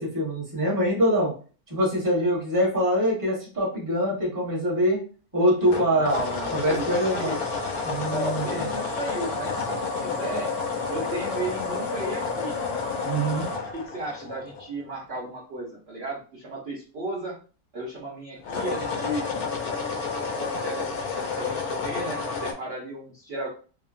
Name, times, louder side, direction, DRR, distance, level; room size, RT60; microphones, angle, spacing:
voice 1, 0.0-1.3 1.7-5.0 5.3-6.2 6.5-7.3 7.8-8.6 13.0-13.5, equal, 15° right, -4 dB, 1.0 m, -24 dB
sound 1, 5.6-14.9 18.4-22.5, left 4 dB, 70° left, 0.9 m, -30 dB
voice 2, 5.9-7.4 8.1-10.5 10.9-12.5 13.7-17.3 17.7-19.2 20.2-23.5, right 2 dB, 50° right, -5 dB, 0.8 m, -34 dB
2.9 x 2.4 x 2.4 m, 0.38 s
omnidirectional pair, 1.9 m